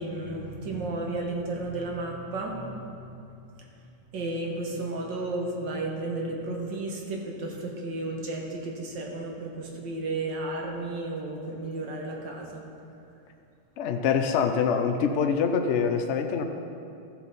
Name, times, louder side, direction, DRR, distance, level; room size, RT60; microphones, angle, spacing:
voice 1, 0.0-12.6, right 2 dB, 90° right, -1 dB, 2.0 m, -33 dB
voice 2, 13.8-16.4, left 6 dB, 75° left, 6 dB, 0.6 m, -25 dB
14.5 x 7.1 x 4.0 m, 2.6 s
omnidirectional pair, 1.9 m